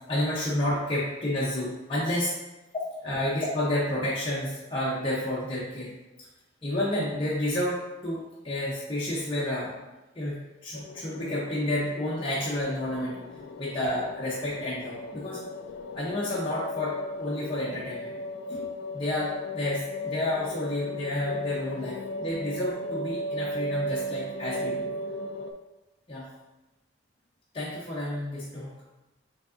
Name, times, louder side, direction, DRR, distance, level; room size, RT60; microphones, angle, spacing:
voice 1, 0.1-2.3 2.7-5.9 6.2-6.3 6.6-9.7 10.1-13.2 13.6-15.4 15.9-18.1 18.5-24.8 26.1-26.3 27.5-28.7, left 1 dB, 30° left, -8 dB, 0.7 m, -30 dB
sound 1, 10.7-25.5, left 1 dB, 60° left, 0.3 m, -36 dB
5.1 x 3.4 x 2.6 m, 1.0 s
head